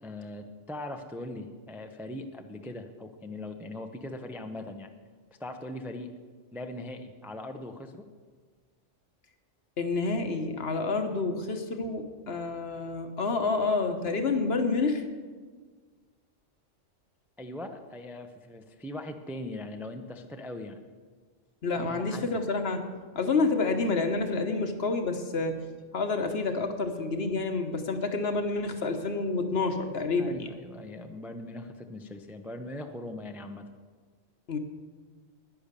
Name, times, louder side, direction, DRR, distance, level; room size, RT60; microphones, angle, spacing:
voice 1, 0.0-4.9 5.4-6.1 6.5-8.1 17.4-20.8 21.8-22.4 30.2-33.7, left 1 dB, ahead, 5 dB, 0.4 m, -40 dB
voice 2, 9.8-15.0 21.6-22.8 23.1-25.6 25.9-30.5 34.5-34.6, left 3 dB, 55° left, 6 dB, 1.2 m, -28 dB
10.5 x 10.5 x 6.7 m, 1.5 s
omnidirectional pair, 1.4 m